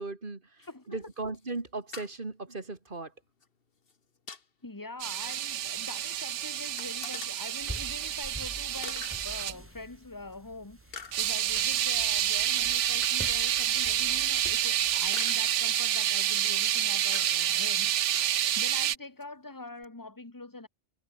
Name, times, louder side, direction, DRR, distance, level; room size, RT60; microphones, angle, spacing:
voice 1, 0.0-3.1, right 3 dB, 45° right, 2.8 m, -37 dB
sound 1, 0.6-0.7 1.0-1.6 1.9-2.1 3.4-3.5 3.9-4.5 5.6-5.7 5.9-6.0 6.8-7.3 8.1-8.2 8.5-8.6 8.8-9.5 10.3-10.4 10.9-11.4 11.9-12.1 12.9-13.7 14.5-14.6 15.1-15.6 16.1-16.5 17.1-18.3 19.2-19.3 19.8-19.9, left 5 dB, 55° left, 1.7 m, -46 dB
voice 2, 0.6-1.1 4.6-20.7, left 2 dB, 15° left, 1.8 m, -44 dB
sound 2, 5.0-9.5 11.1-19.0, right 11 dB, 85° right, 1.1 m, -28 dB
sound 3, 7.6-15.1, equal, 10° right, 6.8 m, -46 dB
omnidirectional pair, 1.2 m